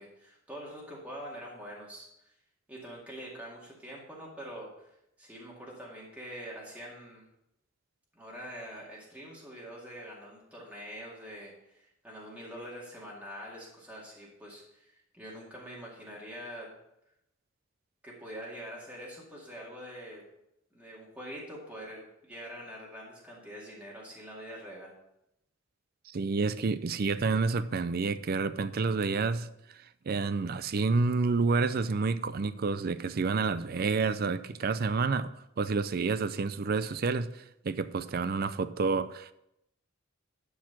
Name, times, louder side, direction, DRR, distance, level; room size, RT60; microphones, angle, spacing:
voice 1, 0.0-2.3 2.7-7.2 8.1-16.7 18.0-20.2 20.7-24.9, equal, 5° right, -5 dB, 2.2 m, -45 dB
voice 2, 26.1-29.5 30.1-35.3 35.6-37.3 37.6-39.3, right 4 dB, 45° right, 14 dB, 0.5 m, -29 dB
11.5 x 4.8 x 5.8 m, 0.82 s
head